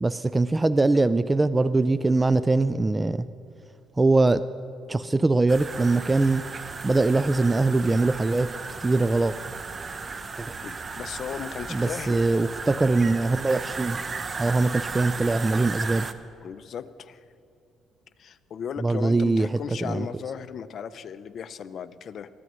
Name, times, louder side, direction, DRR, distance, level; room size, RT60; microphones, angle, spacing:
voice 1, 0.0-3.3 4.0-4.4 4.9-6.4 6.8-8.5 8.8-9.4 10.4-10.6 11.7-14.0 14.4-16.1 18.8-20.1, right 3 dB, 20° right, 14 dB, 0.4 m, -22 dB
sound 1, 5.5-16.1, right 4 dB, 35° right, 0.8 m, -35 dB
voice 2, 10.6-12.2 16.4-17.2 18.2-22.3, left 7 dB, 60° left, 13 dB, 0.6 m, -36 dB
22.5 x 15.0 x 3.1 m, 2.5 s
supercardioid pair, 75°, 0 cm